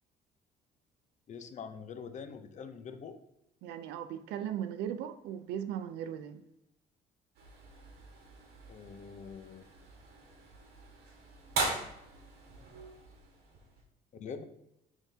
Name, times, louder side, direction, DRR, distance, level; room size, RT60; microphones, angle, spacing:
voice 1, 1.3-3.2 8.7-9.6 14.1-14.4, left 6 dB, 45° left, 0.7 m, -44 dB
voice 2, 3.6-6.4, right 9 dB, 85° right, 0.5 m, -38 dB
sound 1, 7.3-13.8, right 3 dB, 70° right, 1.6 m, -40 dB
11.0 x 3.6 x 2.8 m
cardioid pair, 110°, 17 cm